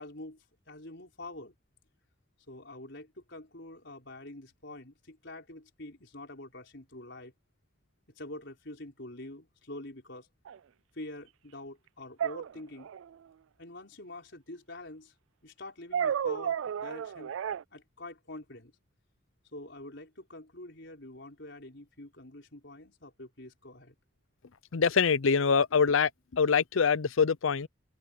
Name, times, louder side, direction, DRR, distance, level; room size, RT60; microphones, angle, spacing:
voice 1, 0.0-1.6 2.5-7.3 8.2-10.3 10.9-12.9 13.6-15.1 15.4-17.3 17.7-18.7 19.5-23.9, left 1 dB, 55° left, 5.6 m, -46 dB
sound 1, 10.5-10.6 12.2-13.1 15.9-17.6, right 8 dB, 75° right, 0.3 m, -32 dB
voice 2, 24.7-27.7, left 6 dB, 75° left, 0.6 m, -25 dB
open air
head